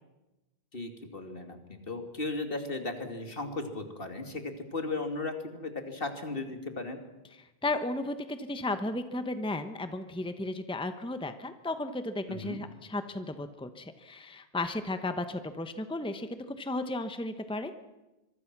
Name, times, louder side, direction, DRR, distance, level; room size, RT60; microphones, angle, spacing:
voice 1, 0.7-7.0 12.3-12.6, left 2 dB, 60° left, 5 dB, 2.7 m, -36 dB
voice 2, 7.4-17.7, left 2 dB, 5° left, 9 dB, 1.0 m, -34 dB
25.0 x 23.5 x 6.1 m, 1.0 s
omnidirectional pair, 1.1 m